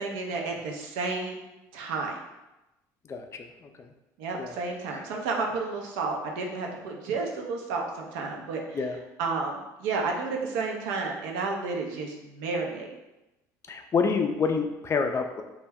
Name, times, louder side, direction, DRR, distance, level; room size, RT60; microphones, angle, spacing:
voice 1, 0.0-1.4 1.7-2.2 4.2-8.8 9.2-12.9, right 4 dB, 80° right, 1 dB, 0.5 m, -31 dB
voice 2, 13.7-15.4, left 5 dB, 35° left, 5 dB, 0.3 m, -27 dB
2.2 x 2.1 x 3.4 m, 0.99 s
supercardioid pair, 75°, 9 cm